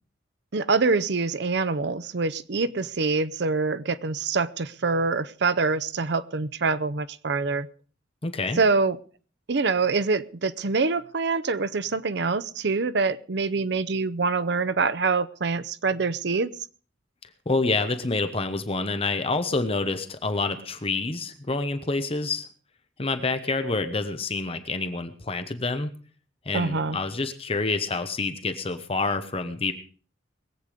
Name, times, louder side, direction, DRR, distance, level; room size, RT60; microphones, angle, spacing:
voice 1, 0.5-7.7 8.6-9.0 9.5-16.5 26.5-27.0, right 4 dB, 65° right, 14 dB, 0.7 m, -25 dB
voice 2, 8.2-8.6 17.5-22.5 23.0-25.9 26.4-29.7, left 3 dB, 30° left, 9 dB, 1.0 m, -27 dB
21.5 x 8.3 x 5.0 m, 0.40 s
head